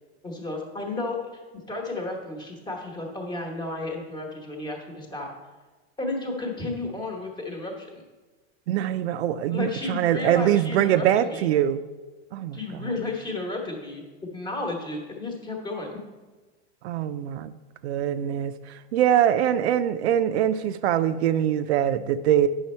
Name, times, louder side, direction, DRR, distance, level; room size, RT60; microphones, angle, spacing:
voice 1, 0.2-1.4 1.7-5.3 6.0-8.0 9.5-11.5 12.5-14.0 14.3-16.0, left 2 dB, 15° left, 1 dB, 1.1 m, -32 dB
voice 2, 8.7-11.8 12.3-12.6 16.8-17.5 17.8-22.5, right 10 dB, 75° right, 11 dB, 0.6 m, -23 dB
9.6 x 6.3 x 4.3 m, 1.3 s
supercardioid pair, 170°, 33 cm